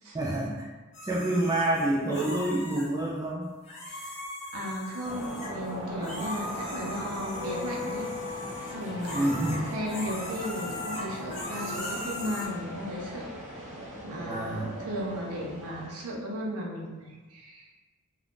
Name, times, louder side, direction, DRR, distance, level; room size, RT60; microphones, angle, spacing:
voice 1, 0.1-0.7 1.0-3.5 9.1-9.6 14.2-14.7, right 1 dB, 15° right, -4 dB, 0.3 m, -28 dB
sound 1, 0.9-2.9 3.6-5.7 6.0-12.5, left 2 dB, 30° left, 0.7 m, -39 dB
voice 2, 3.9-4.2 4.5-8.1 8.7-13.3 14.0-17.7, equal, 75° right, -2 dB, 0.7 m, -36 dB
sound 2, 4.9-14.3, left 3 dB, 85° left, 0.7 m, -42 dB
sound 3, 5.0-15.9, right 1 dB, 30° right, 0.9 m, -40 dB
2.4 x 2.3 x 3.5 m, 1.3 s
head